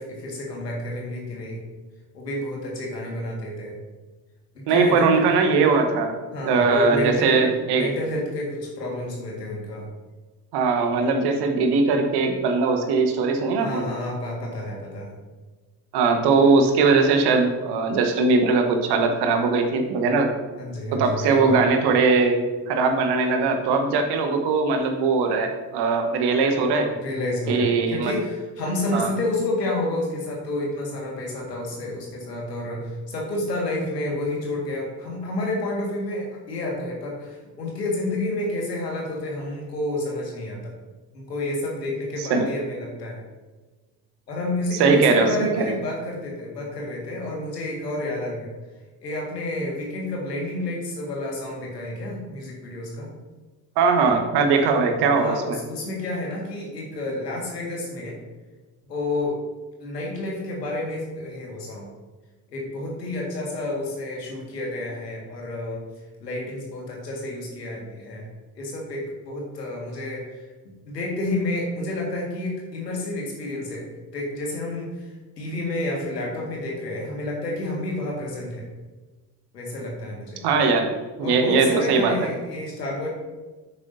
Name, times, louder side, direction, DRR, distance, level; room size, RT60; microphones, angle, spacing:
voice 1, 0.0-1.6 2.1-3.8 4.7-5.2 6.3-7.4 7.8-9.9 13.5-15.1 20.6-21.6 26.9-40.7 41.1-43.2 44.3-48.5 49.0-53.1 54.5-54.8 55.1-58.2 58.9-59.4 59.8-61.9 62.5-65.8 66.2-68.3 68.6-70.5 70.9-73.8 74.1-75.1 75.4-78.7 79.5-80.8 81.2-83.1, left 1 dB, 80° left, -2 dB, 2.1 m, -30 dB
voice 2, 4.7-6.1 6.4-7.9 10.5-13.9 15.9-20.3 20.9-26.9 27.5-28.1 28.9-29.1 42.2-42.5 44.8-45.7 53.8-55.6 80.4-80.9 81.2-82.1, right 4 dB, 55° right, 5 dB, 1.5 m, -20 dB
10.5 x 8.6 x 2.8 m, 1.3 s
figure-of-eight pair, 55°, 48 cm